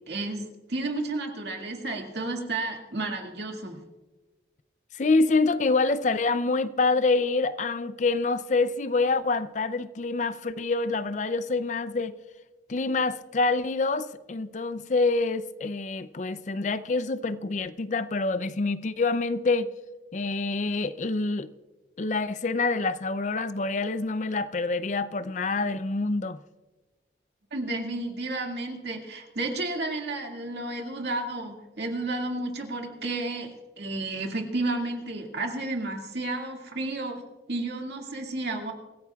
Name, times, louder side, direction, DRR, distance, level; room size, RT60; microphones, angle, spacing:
voice 1, 0.1-3.8 27.5-33.5 33.8-37.2 37.5-38.7, right 2 dB, 70° right, 2.1 m, -32 dB
voice 2, 4.9-12.2 12.7-19.7 20.1-21.5 22.0-26.4, left 3 dB, 40° left, 0.4 m, -26 dB
25.0 x 15.5 x 2.4 m
head